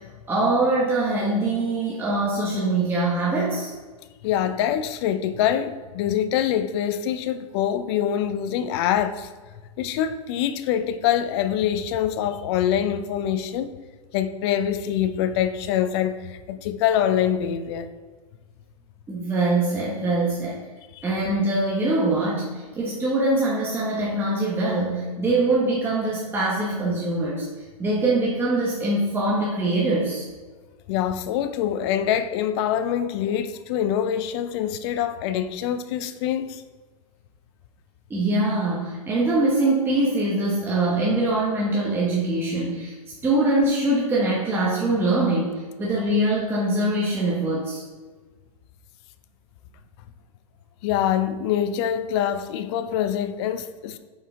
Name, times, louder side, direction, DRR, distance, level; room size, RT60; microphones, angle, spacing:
voice 1, 0.3-3.7 19.1-20.6 21.0-27.5 27.8-30.3 38.1-42.9 43.2-47.8, right 2 dB, 10° right, 1.0 m, -23 dB
voice 2, 4.2-9.3 9.8-13.7 14.1-17.9 20.9-21.1 30.9-36.6 50.8-54.0, left 10 dB, 45° left, 0.5 m, -25 dB
5.4 x 4.7 x 3.6 m
hypercardioid pair, 120°, 19 cm